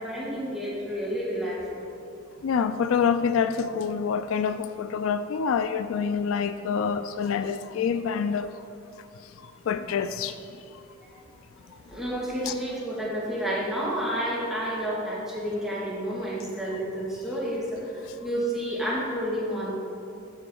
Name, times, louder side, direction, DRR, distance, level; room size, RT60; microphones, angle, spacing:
voice 1, 0.0-1.8 11.8-19.7, equal, ahead, -8 dB, 2.1 m, -30 dB
voice 2, 2.4-8.5 9.7-10.3 12.5-12.6, left 6 dB, 75° left, 11 dB, 0.3 m, -26 dB
7.3 x 6.2 x 5.5 m, 2.6 s
head